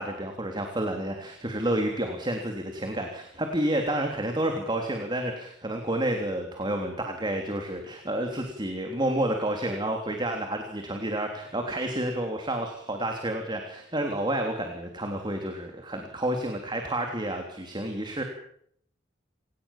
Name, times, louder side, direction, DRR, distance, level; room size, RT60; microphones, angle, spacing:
voice 1, 0.0-18.2, right 1 dB, 25° right, 3 dB, 3.4 m, -30 dB
29.0 x 18.5 x 7.4 m, 0.68 s
head